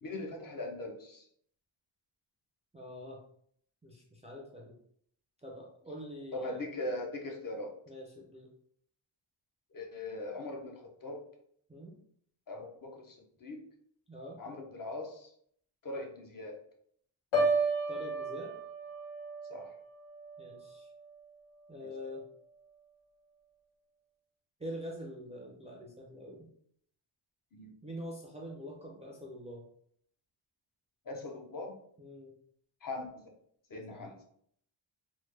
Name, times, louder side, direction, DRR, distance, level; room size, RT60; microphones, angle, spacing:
voice 1, 0.0-1.2 6.3-7.7 9.7-11.2 12.5-13.6 14.4-15.3 15.8-16.6 19.5-19.7 21.8-21.9 27.5-27.7 31.1-31.7 32.8-33.1 33.7-34.1, left 2 dB, 45° left, 2 dB, 0.5 m, -40 dB
voice 2, 2.7-3.2 3.8-4.8 5.4-6.7 7.9-8.5 11.7-12.0 14.1-14.4 17.9-18.5 20.4-20.9 21.7-22.2 24.6-26.5 27.8-29.6 32.0-32.4 33.9-34.1, equal, 15° right, -2 dB, 0.3 m, -45 dB
Piano, 17.3-21.3 21.7-22.0, right 2 dB, 80° left, 1.1 m, -34 dB
3.2 x 2.1 x 3.2 m, 0.66 s
wide cardioid pair, 175°, 48 cm